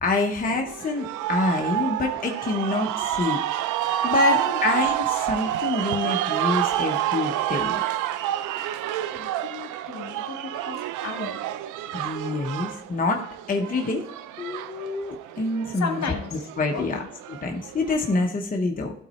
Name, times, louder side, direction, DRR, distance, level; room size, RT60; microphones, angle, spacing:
voice 1, 0.0-3.4 4.0-7.8 11.9-14.0 14.4-16.0 16.6-17.0 17.3-18.9, left 3 dB, 30° left, 2 dB, 1.0 m, -26 dB
sound 1, 0.7-18.3, right 13 dB, 85° right, 0.5 m, -29 dB
voice 2, 4.0-4.6 9.1-11.4 15.7-16.5 16.7-17.1, left 5 dB, 65° left, 3 dB, 1.8 m, -34 dB
12.0 x 4.0 x 4.3 m, 0.71 s
cardioid pair, 90°, 30 cm